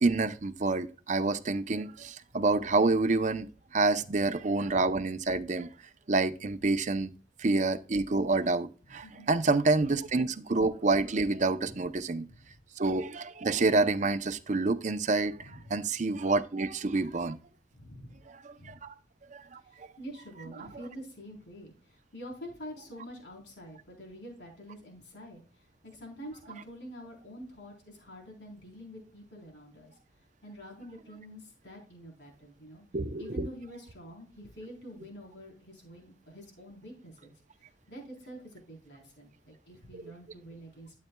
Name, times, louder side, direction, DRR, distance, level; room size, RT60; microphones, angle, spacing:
voice 1, 0.0-5.7 6.1-7.1 7.4-12.3 12.8-17.4 18.4-18.7 19.3-19.6 32.9-33.5, right 3 dB, 45° right, 0.7 m, -28 dB
voice 2, 8.9-9.3 11.6-11.8 12.3-12.5 15.3-15.8 17.7-18.2 18.6-18.8 19.6-30.0 30.4-32.8 33.2-37.3 37.9-40.9, equal, 75° left, 3.9 m, -47 dB
12.0 x 8.3 x 2.3 m
head